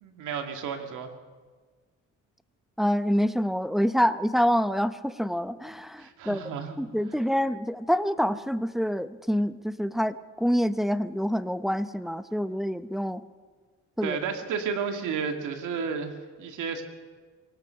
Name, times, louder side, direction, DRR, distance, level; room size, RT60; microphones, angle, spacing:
voice 1, 0.0-1.1 6.0-6.8 14.0-16.8, right 6 dB, 85° right, 5 dB, 2.3 m, -32 dB
voice 2, 2.8-13.2 14.0-14.2, equal, ahead, 12 dB, 0.8 m, -26 dB
26.0 x 18.0 x 5.8 m, 1.4 s
cardioid pair, 90°, 30 cm